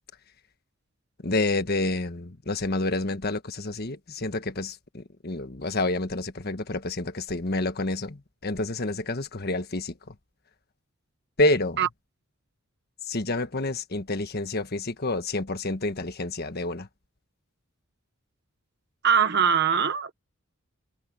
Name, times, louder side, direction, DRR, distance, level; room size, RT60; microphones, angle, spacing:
voice 1, 1.2-10.1 11.4-11.8 13.1-16.9, left 2 dB, 50° left, 1.4 m, -28 dB
voice 2, 19.0-20.1, right 7 dB, 55° right, 1.0 m, -22 dB
head